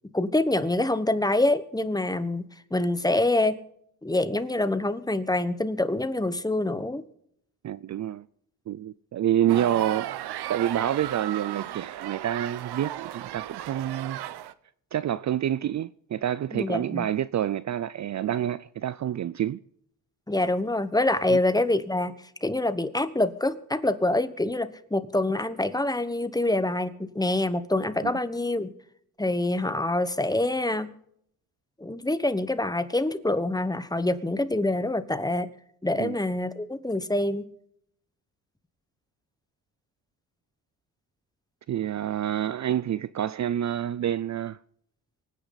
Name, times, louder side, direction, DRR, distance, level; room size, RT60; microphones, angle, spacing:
voice 1, 0.1-3.6 4.0-7.0 16.5-17.1 20.3-22.1 22.4-28.7 29.2-30.9 31.8-35.5 35.8-37.5, left 2 dB, 10° left, 1.3 m, -26 dB
voice 2, 7.6-8.3 8.7-10.1 10.5-14.2 14.9-19.6 21.3-21.4 28.0-28.1 36.0-36.2 41.7-44.6, right 11 dB, 45° right, 0.5 m, -28 dB
sound 1, 9.5-14.5, right 13 dB, 80° right, 0.9 m, -35 dB
24.5 x 9.9 x 4.1 m
cardioid pair, 85°, 39 cm